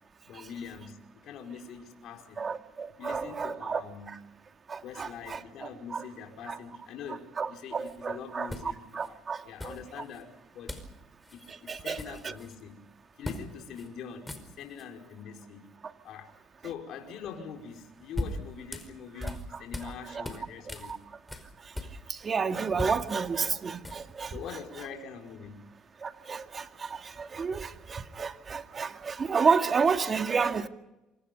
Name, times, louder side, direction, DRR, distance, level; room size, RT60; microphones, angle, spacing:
voice 1, 0.2-1.0 1.2-2.5 3.0-4.1 4.8-9.2 9.4-10.8 11.3-12.8 13.2-15.7 16.0-16.3 16.6-20.9 24.3-25.6, left 7 dB, 70° left, 3 dB, 5.0 m, -43 dB
voice 2, 2.4-3.8 4.1-4.2 4.7-6.0 6.5-6.6 7.4-9.8 11.7-12.3 19.2-20.3 20.9-21.0 22.1-24.4 26.0-30.7, right 5 dB, 35° right, 6 dB, 2.2 m, -31 dB
sound 1, 7.8-8.0 8.5-9.1 9.6-10.2 10.7-10.9 11.2-11.4 11.7-12.6 13.2-13.5 13.7-13.9 14.2-14.9 17.7-19.9 20.2-22.3 22.6-24.2, left 1 dB, 10° left, 5.2 m, -39 dB
28.0 x 25.5 x 5.4 m, 0.96 s
supercardioid pair, 90°, 0 cm